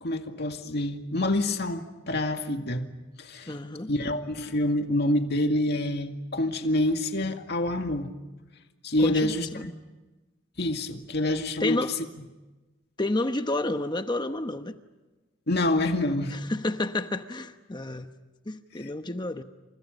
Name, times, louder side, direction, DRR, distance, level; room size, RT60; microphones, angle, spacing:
voice 1, 0.0-2.9 3.2-3.6 3.9-8.1 8.8-9.5 10.6-11.8 15.5-16.4 18.8-18.9, left 1 dB, 55° left, 2.2 m, -27 dB
voice 2, 3.5-3.9 9.0-9.7 11.6-11.9 13.0-14.8 16.3-18.1 18.5-19.4, left 2 dB, 20° left, 1.0 m, -30 dB
29.5 x 27.0 x 5.4 m
head